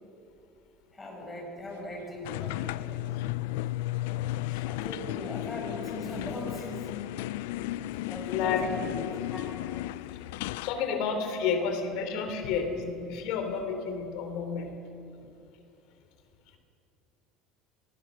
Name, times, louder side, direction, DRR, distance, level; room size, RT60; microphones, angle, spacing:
voice 1, 0.9-3.1 4.5-6.9 8.1-9.8, left 1 dB, 15° left, -1 dB, 7.0 m, -40 dB
sound 1, 2.2-10.8, left 16 dB, 85° left, 0.4 m, -34 dB
voice 2, 8.3-8.7 10.6-14.7 15.1-15.2, left 6 dB, 65° left, 5 dB, 3.4 m, -30 dB
24.0 x 19.0 x 6.4 m, 2.7 s
cardioid pair, 130°, 0 cm